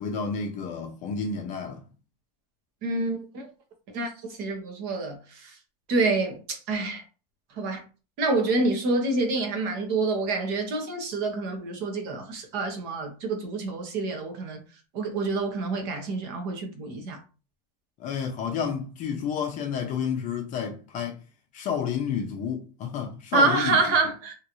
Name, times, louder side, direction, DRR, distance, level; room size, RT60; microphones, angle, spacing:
voice 1, 0.0-1.8 18.0-21.2 21.5-23.8, left 6 dB, 35° left, 0.5 m, -30 dB
voice 2, 2.8-3.5 3.9-5.6 5.9-7.0 7.6-7.8 8.2-14.6 14.9-17.2 23.3-24.3, right 3 dB, 50° right, 1.0 m, -27 dB
3.0 x 2.5 x 2.9 m
supercardioid pair, 155°, 21 cm